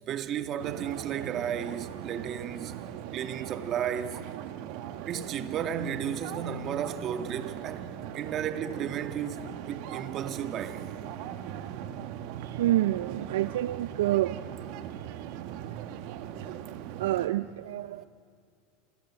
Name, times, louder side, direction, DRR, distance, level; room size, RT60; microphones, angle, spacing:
voice 1, 0.0-2.9 3.1-4.2 5.1-10.9 18.0-18.1, right 9 dB, 45° right, 2.0 m, -34 dB
sound 1, 0.6-17.3, right 10 dB, 65° right, 1.7 m, -40 dB
voice 2, 12.4-14.4 17.0-18.1, right 14 dB, 80° right, 0.5 m, -27 dB
29.0 x 24.0 x 7.6 m
hypercardioid pair, 100°, 0 cm